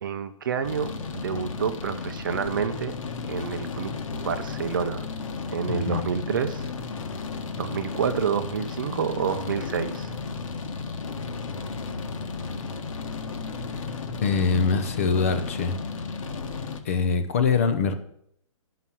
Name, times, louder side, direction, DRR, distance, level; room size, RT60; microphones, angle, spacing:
voice 1, 0.0-2.9 3.2-5.1 5.5-6.7 7.6-10.1, right 7 dB, 35° right, 10 dB, 0.6 m, -29 dB
sound 1, 0.6-16.8, left 4 dB, 65° left, 1.5 m, -34 dB
voice 2, 5.7-6.0 14.2-15.8 16.8-17.9, left 5 dB, 25° left, 9 dB, 0.6 m, -23 dB
11.0 x 5.7 x 7.4 m, 0.72 s
hypercardioid pair, 180°, 18 cm